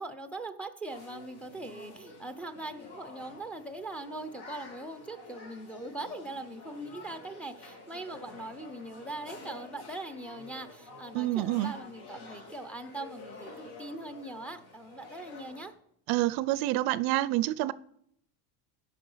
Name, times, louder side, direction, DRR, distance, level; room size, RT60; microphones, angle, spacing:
voice 1, 0.0-15.7, right 2 dB, 5° left, 10 dB, 0.6 m, -41 dB
sound 1, 0.9-15.7, left 3 dB, 65° left, 3.0 m, -49 dB
voice 2, 11.1-11.7 16.1-17.7, right 16 dB, 60° right, 18 dB, 0.5 m, -27 dB
15.5 x 5.5 x 5.6 m, 0.70 s
cardioid pair, 135°, 43 cm